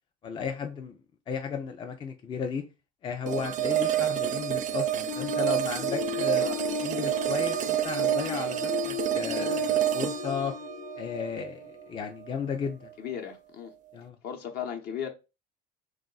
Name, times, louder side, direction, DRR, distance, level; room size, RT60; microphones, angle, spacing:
voice 1, 0.2-0.9 1.3-2.6 3.0-6.4 6.8-10.6 11.0-12.9 13.9-14.2, left 6 dB, 25° left, 0.4 m, -34 dB
sound 1, 3.3-12.3, right 12 dB, 40° right, 0.5 m, -29 dB
sound 2, 5.1-11.8, left 9 dB, 70° left, 1.1 m, -36 dB
voice 2, 13.0-13.7 14.2-15.1, left 8 dB, 55° left, 1.0 m, -36 dB
3.8 x 2.5 x 3.9 m
cardioid pair, 125°, 20 cm